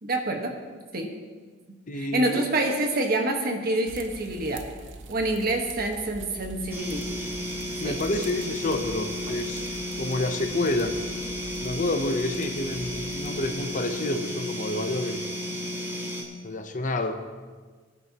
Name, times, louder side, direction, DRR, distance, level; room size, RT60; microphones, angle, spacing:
voice 1, 0.0-0.6 0.9-1.1 1.9-4.7 5.1-7.2 7.8-8.0, right 1 dB, 55° right, 3 dB, 1.4 m, -27 dB
voice 2, 1.9-2.5 7.8-9.7 10.0-10.9 11.6-15.3 16.4-17.2, left 2 dB, 45° left, 7 dB, 0.8 m, -29 dB
sound 1, 3.9-13.5, right 2 dB, 85° right, 0.8 m, -44 dB
sound 2, 6.7-16.2, equal, 15° right, 1.9 m, -33 dB
20.5 x 9.8 x 3.0 m, 1.5 s
head